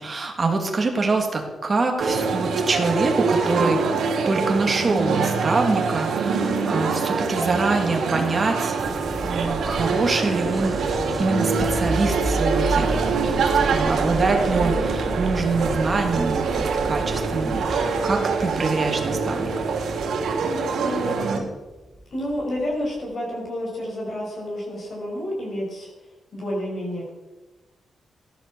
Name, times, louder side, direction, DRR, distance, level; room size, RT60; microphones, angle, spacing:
voice 1, 0.0-4.0 4.3-8.8 9.2-10.8 11.2-13.0 13.4-19.5, right 3 dB, 30° right, 2 dB, 2.9 m, -25 dB
sound 1, 2.0-21.4, right 4 dB, 75° right, 3.3 m, -24 dB
sound 2, 8.8-23.0, right 1 dB, 5° right, 1.3 m, -33 dB
voice 2, 20.8-21.4 22.1-27.1, left 1 dB, 45° left, -2 dB, 6.3 m, -30 dB
16.0 x 11.5 x 7.3 m, 1.1 s
wide cardioid pair, 160°, 0 cm